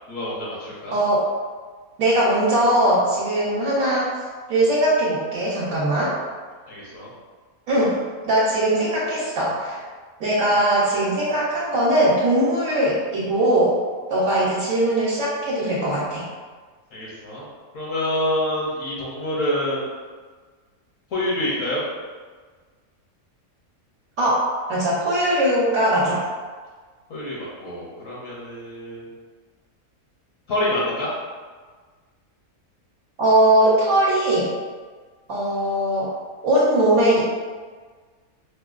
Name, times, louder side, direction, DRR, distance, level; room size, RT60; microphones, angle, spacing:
voice 1, 0.1-0.9 6.7-7.1 16.9-17.4 17.7-19.8 21.1-21.8 27.1-29.1 30.5-31.2, left 1 dB, 65° left, -6 dB, 1.1 m, -27 dB
voice 2, 2.0-4.1 4.5-6.1 7.7-9.8 10.2-13.8 14.1-16.3 24.2-26.2 33.2-34.5 35.3-36.1 36.4-37.2, right 1 dB, 70° right, -8 dB, 1.1 m, -20 dB
4.8 x 2.2 x 2.4 m, 1.5 s
omnidirectional pair, 1.5 m